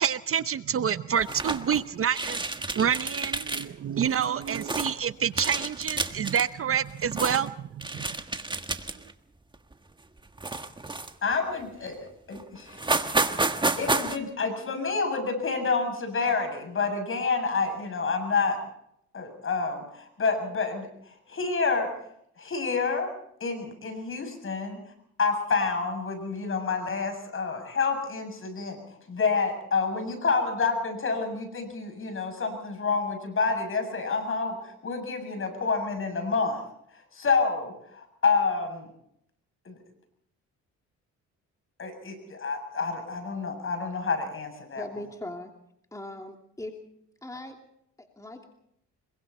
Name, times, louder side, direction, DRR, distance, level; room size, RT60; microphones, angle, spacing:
voice 1, 0.0-2.4 2.7-7.5 7.9-8.0, right 8 dB, 45° right, 14 dB, 0.7 m, -27 dB
sound 1, 1.2-1.8 2.1-3.7 4.0-4.9 5.3-6.5 6.9-7.5 7.8-9.1 9.5-9.7 10.4-11.3 11.9-12.0 12.3-12.4 12.7-14.2, right 2 dB, 15° right, 1.5 m, -30 dB
voice 2, 11.2-12.9 13.8-18.6 19.1-21.9 22.4-23.1 23.4-24.8 25.2-28.8 29.1-36.6 36.9-38.9 39.6-39.8 41.8-44.9, left 4 dB, 45° left, 6 dB, 7.5 m, -28 dB
voice 3, 44.8-45.5 45.9-46.7 47.2-47.6 48.0-48.5, left 1 dB, 10° left, 2 dB, 2.8 m, -39 dB
26.5 x 23.5 x 4.2 m, 0.73 s
cardioid pair, 90°, 30 cm